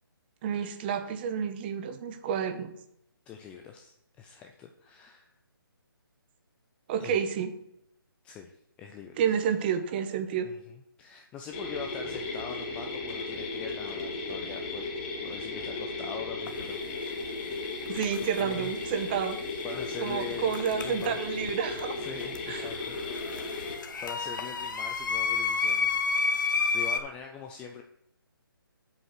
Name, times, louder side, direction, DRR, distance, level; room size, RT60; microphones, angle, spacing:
voice 1, 0.4-2.7 6.9-7.5 9.2-10.5 17.9-19.4 20.0-22.0 22.5-22.6, right 8 dB, 25° right, 8 dB, 1.0 m, -30 dB
voice 2, 3.3-5.3 7.0-7.3 8.2-9.2 10.4-14.8 15.2-17.4 18.4-18.8 19.6-20.5 20.8-21.2 22.0-23.6 24.0-27.8, left 7 dB, 10° left, 4 dB, 0.3 m, -43 dB
sound 1, 11.5-23.8, left 3 dB, 25° left, 1.9 m, -35 dB
sound 2, 16.5-16.6 17.9-18.4 20.5-21.5 21.8-27.0, left 5 dB, 55° left, 1.2 m, -30 dB
7.8 x 5.2 x 6.6 m, 0.77 s
figure-of-eight pair, 150°, 12 cm